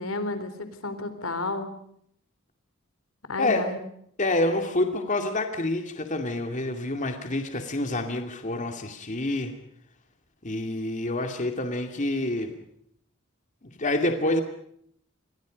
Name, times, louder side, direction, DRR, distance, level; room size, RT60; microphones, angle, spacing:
voice 1, 0.0-1.7 3.3-3.8, left 2 dB, 80° left, 10 dB, 3.9 m, -31 dB
voice 2, 4.2-9.5 10.4-12.5 13.8-14.4, left 2 dB, 35° left, 5 dB, 2.5 m, -27 dB
29.5 x 23.5 x 5.2 m, 0.67 s
head